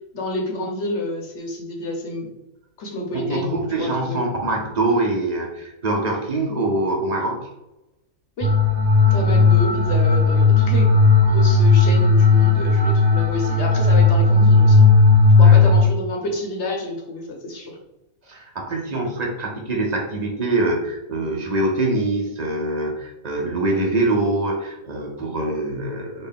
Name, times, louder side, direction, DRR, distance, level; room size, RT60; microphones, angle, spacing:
voice 1, 0.1-2.3 2.8-4.2 8.4-8.5 9.1-14.8 15.4-17.8, left 1 dB, 55° left, 1 dB, 1.0 m, -29 dB
voice 2, 3.1-7.5 9.0-9.1 15.4-15.6 18.3-26.3, right 2 dB, 45° right, 0 dB, 0.5 m, -24 dB
sound 1, 8.4-15.8, left 3 dB, 20° right, 1.2 m, -15 dB
4.0 x 2.2 x 3.6 m, 0.94 s
omnidirectional pair, 1.5 m